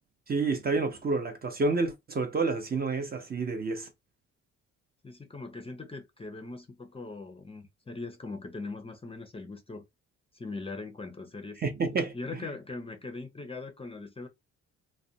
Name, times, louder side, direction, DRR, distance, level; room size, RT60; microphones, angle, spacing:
voice 1, 0.3-3.9 11.6-12.1, right 3 dB, 30° right, 0.6 m, -29 dB
voice 2, 5.0-9.8 10.3-11.6 12.1-14.3, left 3 dB, 20° left, 0.5 m, -40 dB
2.4 x 2.1 x 2.7 m
cardioid pair, 90°, 30 cm